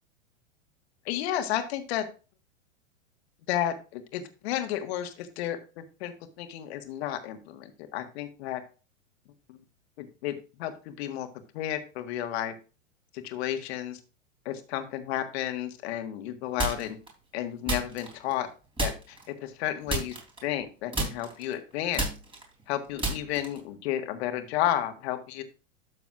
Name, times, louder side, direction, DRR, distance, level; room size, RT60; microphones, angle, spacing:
voice 1, 1.1-2.1 3.5-8.6 9.5-9.6 10.0-11.3 11.5-12.5 13.1-14.0 14.5-17.0 17.3-18.5 18.8-20.2 20.4-22.1 22.7-25.4, left 12 dB, 55° left, 7 dB, 1.7 m, -32 dB
sound 1, 16.6-17.1 17.7-18.5 18.8-19.3 19.9-20.7 20.9-23.7, right 2 dB, 15° right, 3.4 m, -32 dB
12.5 x 6.8 x 2.5 m, 0.33 s
hypercardioid pair, 105°, 38 cm